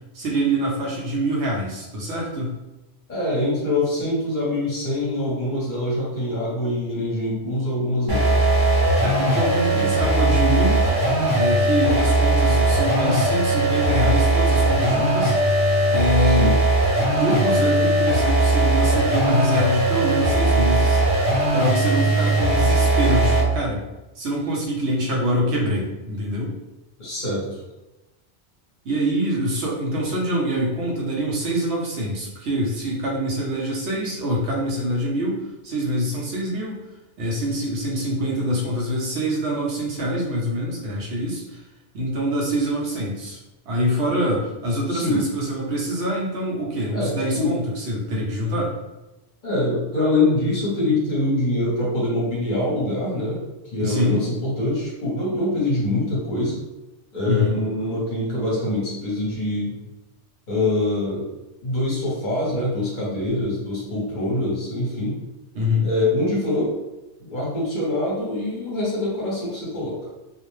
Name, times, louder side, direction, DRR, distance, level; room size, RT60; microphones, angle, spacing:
voice 1, 0.1-2.5 9.0-10.9 11.3-15.4 15.9-16.6 17.0-21.0 21.5-23.8 24.2-26.6 28.8-36.8 37.2-41.6 41.9-43.4 43.7-48.7 53.8-54.2 57.2-57.6 65.5-65.9, equal, 75° right, -2 dB, 0.9 m, -25 dB
voice 2, 3.1-8.3 9.7-9.9 16.2-16.6 27.0-27.6 44.9-45.3 46.9-47.6 49.4-53.4 53.7-56.6 57.1-59.8 60.5-61.3 61.6-65.2 65.8-66.7 67.2-70.0, left 2 dB, 45° left, -5 dB, 0.9 m, -24 dB
sound 1, 8.1-23.6, right 2 dB, 25° right, 0.7 m, -19 dB
2.4 x 2.0 x 3.0 m, 1.0 s
omnidirectional pair, 1.2 m